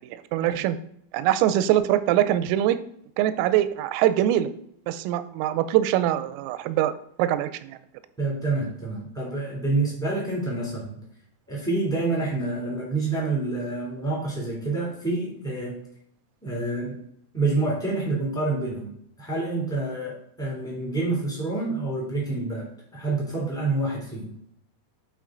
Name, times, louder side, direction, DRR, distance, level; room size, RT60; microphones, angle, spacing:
voice 1, 0.0-0.8 1.1-2.8 3.2-4.5 4.9-6.9 7.2-7.8, right 12 dB, 90° right, 13 dB, 3.2 m, -23 dB
voice 2, 8.2-11.0 11.5-15.8 16.4-16.9 17.3-18.9 19.2-22.6 22.9-24.3, right 2 dB, ahead, -5 dB, 1.1 m, -27 dB
11.5 x 4.4 x 3.8 m, 0.70 s
omnidirectional pair, 5.8 m